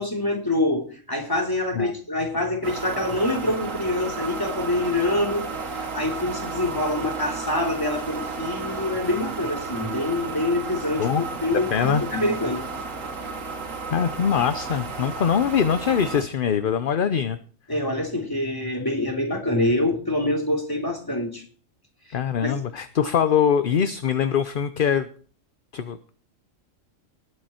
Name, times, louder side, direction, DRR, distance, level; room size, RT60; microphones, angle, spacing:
voice 1, 0.0-12.6 17.7-21.4 22.4-22.5, left 1 dB, 15° left, 1 dB, 3.0 m, -26 dB
sound 1, 2.6-16.2, right 4 dB, 80° right, 2.1 m, -33 dB
voice 2, 11.7-12.0 13.9-17.4 22.1-25.1 25.7-26.1, left 7 dB, 50° left, 11 dB, 0.8 m, -23 dB
19.5 x 8.0 x 4.4 m, 0.43 s
omnidirectional pair, 1.3 m